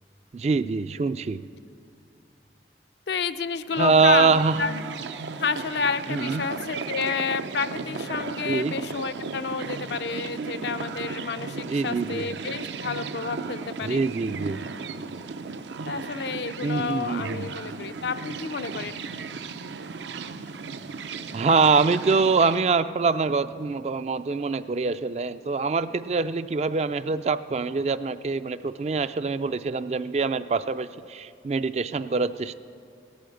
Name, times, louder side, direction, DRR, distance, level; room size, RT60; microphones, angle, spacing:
voice 1, 0.3-1.4 3.8-4.7 6.1-6.5 8.5-8.8 11.7-12.2 13.8-14.6 16.6-17.5 21.3-32.5, right 4 dB, 35° right, 13 dB, 0.3 m, -24 dB
voice 2, 3.1-4.8 5.4-14.0 15.9-19.0, left 5 dB, 70° left, 10 dB, 0.5 m, -30 dB
sound 1, 3.7-22.6, right 4 dB, 80° right, 0.6 m, -35 dB
17.5 x 8.6 x 7.8 m, 2.4 s
head